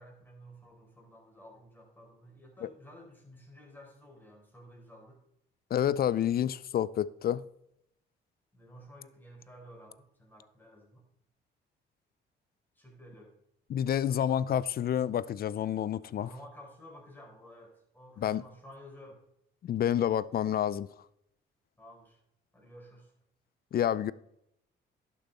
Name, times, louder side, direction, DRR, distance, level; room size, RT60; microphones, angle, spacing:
voice 1, 0.0-5.2 8.5-11.0 12.7-13.3 16.2-19.2 21.8-22.2 22.5-23.1, equal, 10° left, 4.6 m, -52 dB
voice 2, 5.7-7.4 13.7-16.3 18.2-18.4 19.6-20.9 23.7-24.1, left 10 dB, 50° left, 0.5 m, -29 dB
11.5 x 7.0 x 4.2 m
cardioid pair, 90°, 20 cm